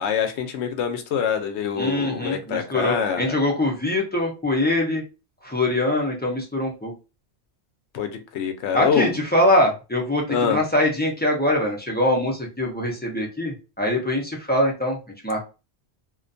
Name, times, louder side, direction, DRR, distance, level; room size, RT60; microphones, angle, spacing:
voice 1, 0.0-3.3 7.9-9.2 10.3-10.6, left 7 dB, 80° left, 0.9 m, -25 dB
voice 2, 1.8-5.0 5.4-6.9 8.7-10.2 10.5-15.0 15.2-15.4, left 1 dB, 15° left, 0.4 m, -23 dB
2.4 x 2.2 x 2.5 m
omnidirectional pair, 1.1 m